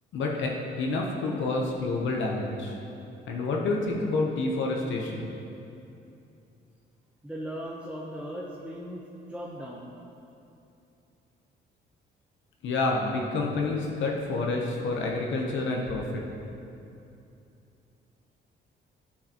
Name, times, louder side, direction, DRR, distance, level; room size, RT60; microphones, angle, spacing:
voice 1, 0.1-2.8 3.3-5.3 12.6-16.2, left 3 dB, 75° left, 0 dB, 0.8 m, -28 dB
voice 2, 7.2-9.9, equal, 5° right, -4 dB, 0.7 m, -38 dB
10.5 x 4.8 x 2.9 m, 2.7 s
cardioid pair, 90°, 20 cm